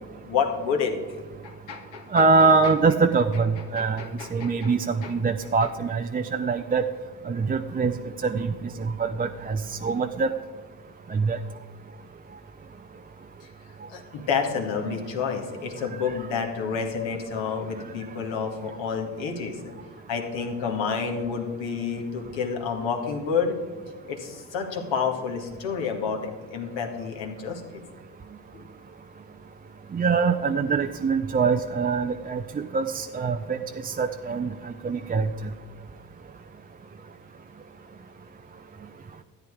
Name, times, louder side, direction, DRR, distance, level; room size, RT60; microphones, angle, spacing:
voice 1, 0.2-0.9 1.4-2.3 2.6-2.7 3.6-4.7 5.0-5.1 5.6-5.7 13.4-13.5 13.9-19.7 20.1-23.6 24.1-27.8 28.5-28.7, left 6 dB, 65° left, 2 dB, 2.1 m, -29 dB
voice 2, 2.1-4.0 4.3-6.8 7.3-7.9 8.2-8.5 8.8-10.3 11.1-11.4 14.9-15.0 29.9-32.4 32.7-35.3, right 4 dB, 20° right, 6 dB, 0.5 m, -24 dB
13.0 x 9.1 x 4.8 m, 1.5 s
hypercardioid pair, 55°, 49 cm